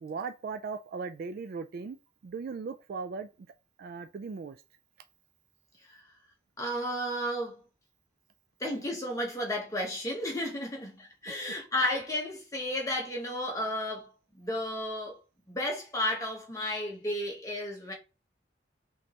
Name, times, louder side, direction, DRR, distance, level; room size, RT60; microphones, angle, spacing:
voice 1, 0.0-2.0 2.2-3.3 3.8-4.6 11.3-11.4, right 5 dB, 50° right, 0.3 m, -38 dB
voice 2, 6.6-7.6 8.6-14.1 14.3-15.2 15.5-17.9, left 1 dB, 20° left, 1.1 m, -33 dB
5.1 x 3.1 x 2.9 m
head